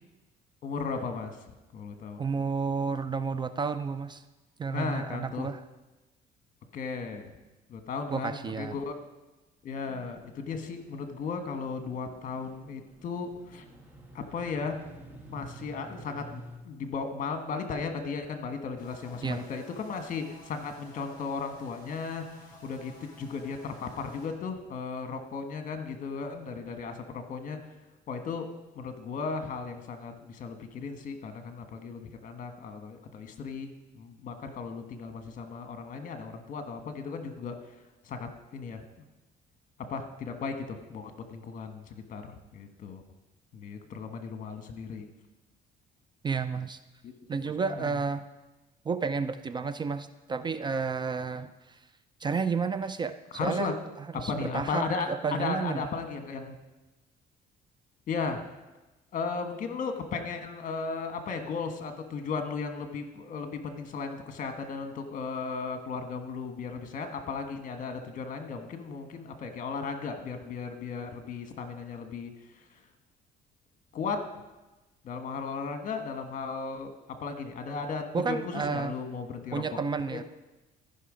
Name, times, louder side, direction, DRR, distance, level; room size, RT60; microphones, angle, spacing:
voice 1, 0.6-1.4 1.7-2.2 4.7-5.5 6.7-7.4 7.7-9.0 9.6-13.6 14.1-14.8 15.3-27.6 28.1-28.5 28.7-33.7 34.0-37.6 38.0-39.1 39.9-43.0 43.5-45.0 47.0-47.1 47.4-48.0 53.3-53.7 54.1-56.6 58.1-58.5 59.1-72.3 73.9-74.2 75.0-76.9 77.2-79.8 80.1-80.2, left 5 dB, 50° left, 6 dB, 1.3 m, -36 dB
voice 2, 2.2-4.2 4.6-5.6 8.1-8.8 19.2-19.4 46.2-46.8 47.3-48.2 48.9-51.5 52.2-53.7 54.2-55.8 78.1-78.9 79.5-80.2, right 5 dB, 25° right, 12 dB, 0.4 m, -31 dB
sound 1, 9.8-16.6, right 1 dB, 10° right, 1.8 m, -50 dB
sound 2, 18.8-24.3, equal, 20° left, 4.3 m, -53 dB
14.5 x 5.8 x 5.0 m, 1.1 s
cardioid pair, 110°, 17 cm